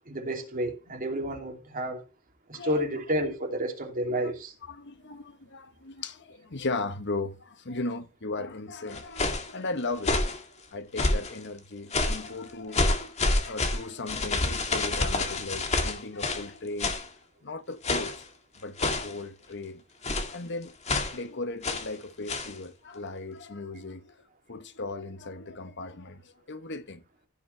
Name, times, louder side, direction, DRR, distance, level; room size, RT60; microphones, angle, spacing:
voice 1, 0.1-2.0 2.5-4.5 21.1-21.2, right 1 dB, 40° right, 2.8 m, -30 dB
voice 2, 2.5-3.0 4.7-10.4 10.7-17.0 17.4-18.2 18.6-19.8 20.3-20.7 21.0-24.2 24.5-27.0, left 3 dB, 55° left, 1.2 m, -37 dB
sound 1, 8.9-9.5 10.0-10.4 11.0-11.4 11.9-12.3 12.7-16.5 16.8-17.1 17.8-18.2 18.8-19.2 20.0-20.4 20.9-21.2 21.6-21.9 22.3-22.5, left 2 dB, 30° left, 2.1 m, -28 dB
15.5 x 7.1 x 3.4 m
head